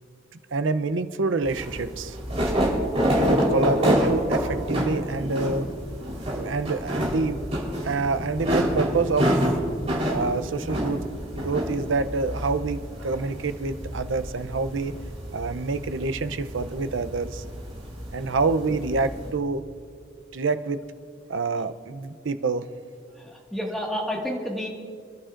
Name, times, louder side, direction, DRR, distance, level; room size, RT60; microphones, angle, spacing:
voice 1, 0.5-2.2 3.3-5.7 6.3-7.4 7.8-9.5 10.1-11.0 11.3-14.9 15.3-17.4 18.1-19.6 20.3-20.8 21.3-22.7, right 3 dB, 85° right, 10 dB, 0.6 m, -27 dB
sound 1, 1.4-19.3, equal, 35° right, 3.9 m, -28 dB
voice 2, 23.2-24.7, equal, ahead, -2 dB, 1.8 m, -30 dB
28.0 x 11.5 x 2.5 m, 2.2 s
head